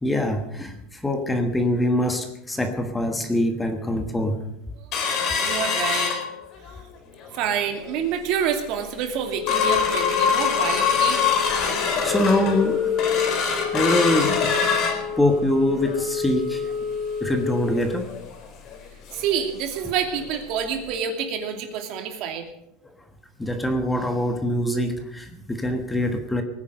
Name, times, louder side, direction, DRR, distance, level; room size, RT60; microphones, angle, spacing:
voice 1, 0.0-4.4 11.5-12.8 13.7-14.5 15.2-16.7 17.2-18.1 23.4-26.4, left 1 dB, 5° left, 6 dB, 1.3 m, -24 dB
sound 1, 4.9-6.8 7.2-7.3 7.6-8.0 8.5-8.6 8.9-19.4 19.8-19.9 20.2-20.4 20.9-21.0, left 6 dB, 40° left, 4.4 m, -24 dB
voice 2, 5.4-6.1 7.3-11.2 19.1-22.5, right 8 dB, 50° right, 5 dB, 2.5 m, -27 dB
19.5 x 9.9 x 6.5 m, 0.83 s
supercardioid pair, 155°, 0 cm